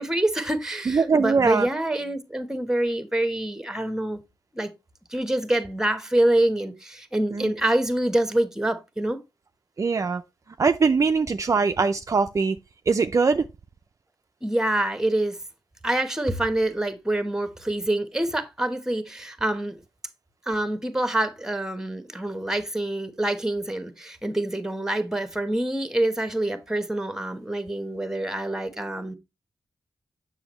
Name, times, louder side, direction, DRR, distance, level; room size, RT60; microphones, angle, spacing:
voice 1, 0.0-4.2 4.5-4.7 5.1-9.2 14.4-15.4 15.8-19.8 20.5-29.2, right 1 dB, 5° right, 1.1 m, -26 dB
voice 2, 0.9-1.7 7.3-7.5 9.8-10.2 10.6-12.6 12.9-13.4, right 4 dB, 40° right, 0.4 m, -22 dB
7.0 x 6.1 x 3.0 m
cardioid pair, 60°, 9 cm